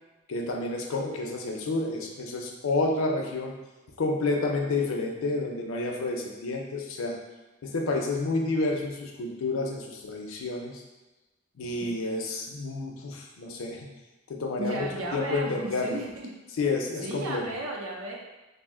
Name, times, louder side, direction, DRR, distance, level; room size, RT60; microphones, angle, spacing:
voice 1, 0.3-3.5 4.0-7.2 7.6-10.8 11.6-13.9 14.3-14.9 15.1-16.0 16.6-17.4, left 3 dB, 80° left, 1 dB, 0.5 m, -29 dB
voice 2, 14.6-16.3 17.0-18.2, right 1 dB, 70° right, -1 dB, 0.6 m, -34 dB
2.6 x 2.0 x 3.6 m, 1.1 s
head